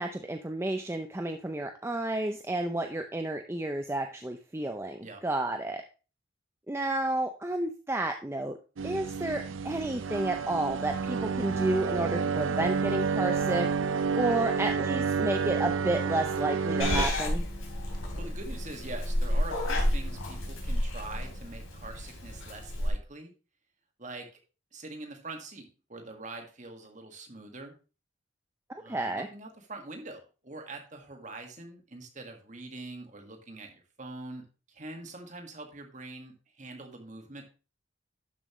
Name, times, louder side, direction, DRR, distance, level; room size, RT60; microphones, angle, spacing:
voice 1, 0.0-5.8 6.7-8.6 8.8-13.7 14.2-17.4 28.7-29.3, right 1 dB, 15° right, 5 dB, 0.5 m, -31 dB
sound 1, 8.8-17.0, right 5 dB, 75° right, 0.5 m, -29 dB
Purr / Meow, 16.8-22.9, left 1 dB, 90° left, 3.4 m, -31 dB
voice 2, 18.1-23.3 24.0-24.3 24.7-27.7 28.8-37.4, right 2 dB, 35° right, 3 dB, 1.8 m, -44 dB
12.0 x 7.4 x 3.1 m, 0.34 s
head